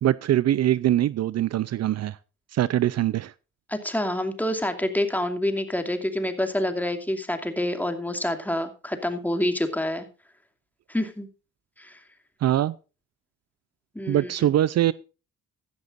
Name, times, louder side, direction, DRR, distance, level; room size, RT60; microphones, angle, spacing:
voice 1, 0.0-2.2 2.5-3.3 12.4-12.7 14.1-14.9, right 12 dB, 60° right, 0.6 m, -22 dB
voice 2, 3.7-10.1 10.9-11.3 11.8-12.0 13.9-14.5, left 1 dB, 5° left, 2.6 m, -27 dB
15.5 x 12.0 x 2.5 m
cardioid pair, 90°, 30 cm